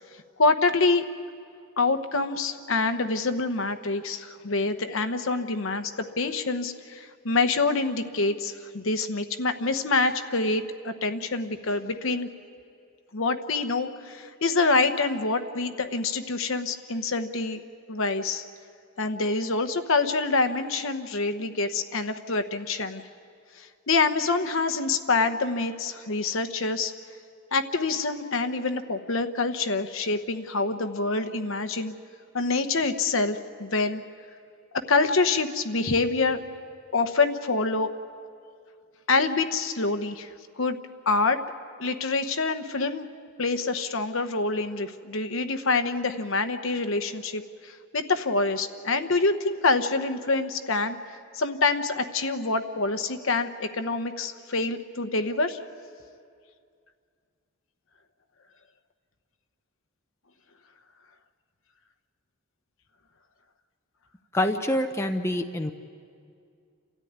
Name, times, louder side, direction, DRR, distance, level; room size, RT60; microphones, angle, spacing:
voice 1, 0.4-1.0 1.8-5.9 6.2-12.3 13.1-17.6 17.9-18.4 19.0-23.0 23.6-26.9 27.5-31.9 32.3-34.0 34.9-36.4 36.9-37.9 39.1-40.3 40.6-40.8 41.1-41.4 41.8-43.1 43.4-51.0 51.3-55.6, left 3 dB, 60° left, 9 dB, 1.0 m, -26 dB
voice 2, 64.3-65.7, left 1 dB, 10° left, 5 dB, 0.7 m, -26 dB
29.5 x 13.5 x 9.5 m, 2.3 s
head